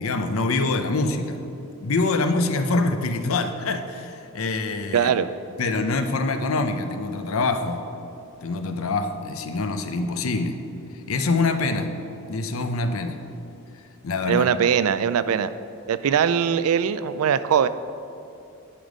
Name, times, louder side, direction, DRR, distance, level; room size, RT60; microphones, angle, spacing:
voice 1, 0.0-1.4 1.8-5.1 5.6-7.8 8.4-10.6 11.1-11.9 12.3-13.2 14.0-14.5, left 3 dB, 75° left, 8 dB, 0.6 m, -25 dB
voice 2, 4.9-5.3 14.3-15.5 15.9-17.7, right 8 dB, 85° right, 13 dB, 0.4 m, -21 dB
10.0 x 5.2 x 5.1 m, 2.6 s
head